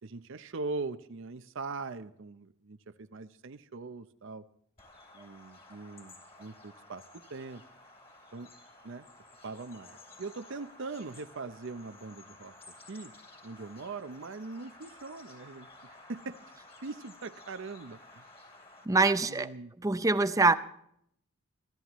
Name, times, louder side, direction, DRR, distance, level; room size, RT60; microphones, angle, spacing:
voice 1, 0.0-4.4 5.1-7.0 7.3-7.6 8.3-8.5 8.8-9.1 9.4-12.5 12.9-13.1 13.4-16.4 16.8-18.2 19.2-19.7, right 3 dB, 60° right, 0.6 m, -41 dB
Bird vocalization bird call bird song, 4.8-18.9, left 2 dB, 25° left, 3.1 m, -54 dB
voice 2, 18.9-19.5 19.8-20.5, right 3 dB, 15° right, 0.5 m, -24 dB
24.5 x 13.0 x 3.0 m
head